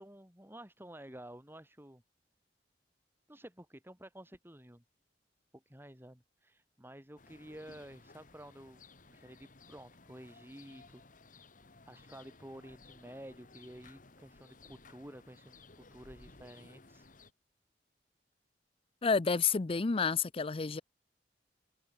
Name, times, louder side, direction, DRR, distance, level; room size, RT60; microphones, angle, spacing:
voice 1, 0.0-2.0 3.3-4.8 5.7-8.8 9.1-11.0 11.9-15.6 15.9-17.1, right 1 dB, 15° right, 4.0 m, -51 dB
sound 1, 7.2-17.3, left 3 dB, 50° left, 2.1 m, -58 dB
voice 2, 19.0-20.8, left 5 dB, 30° left, 0.5 m, -30 dB
head